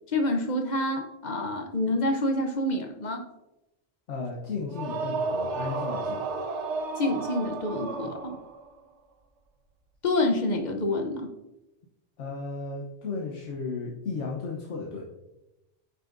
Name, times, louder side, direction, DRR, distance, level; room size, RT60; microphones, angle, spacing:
voice 1, 0.1-3.2 7.0-8.4 10.0-11.3, left 1 dB, 45° left, 4 dB, 0.8 m, -27 dB
voice 2, 4.1-6.2 12.2-15.0, left 4 dB, 85° left, -2 dB, 1.3 m, -34 dB
sound 1, 4.7-8.7, right 4 dB, 75° right, 1.0 m, -32 dB
8.9 x 5.6 x 2.5 m, 0.97 s
omnidirectional pair, 1.2 m